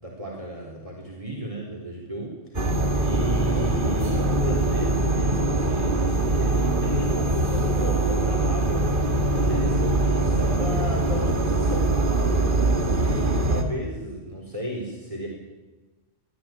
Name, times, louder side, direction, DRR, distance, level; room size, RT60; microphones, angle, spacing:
voice 1, 0.0-2.8 3.0-8.9 9.3-11.9 12.8-15.3, right 1 dB, 25° right, -1 dB, 4.4 m, -34 dB
sound 1, 2.5-13.6, right 2 dB, 45° right, 2.2 m, -23 dB
23.0 x 14.0 x 9.2 m, 1.2 s
omnidirectional pair, 1.3 m